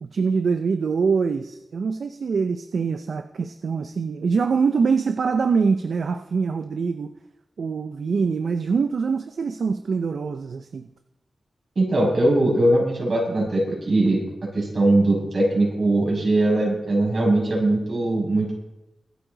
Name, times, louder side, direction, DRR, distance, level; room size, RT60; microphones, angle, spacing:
voice 1, 0.0-7.1 7.6-10.9, right 5 dB, 70° right, 8 dB, 0.7 m, -24 dB
voice 2, 11.7-14.2 14.5-18.6, right 1 dB, 55° right, -2 dB, 6.6 m, -20 dB
24.0 x 8.7 x 4.0 m, 0.94 s
wide cardioid pair, 115°, 0 cm